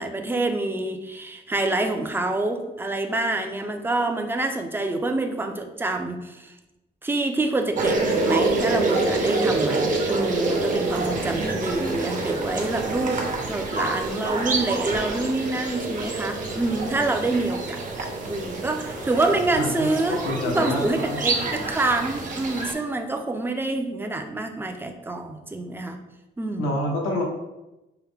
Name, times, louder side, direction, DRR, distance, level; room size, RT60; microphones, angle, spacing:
voice 1, 0.0-6.5 7.0-26.0 26.4-26.7, right 2 dB, 10° right, 5 dB, 0.5 m, -27 dB
sound 1, 7.8-22.7, right 3 dB, 40° right, 0.8 m, -27 dB
voice 2, 19.5-19.9 20.2-20.8 21.3-21.4 26.6-27.2, left 1 dB, 90° left, -1 dB, 1.0 m, -26 dB
4.8 x 2.1 x 3.3 m, 0.98 s
cardioid pair, 90°, 20 cm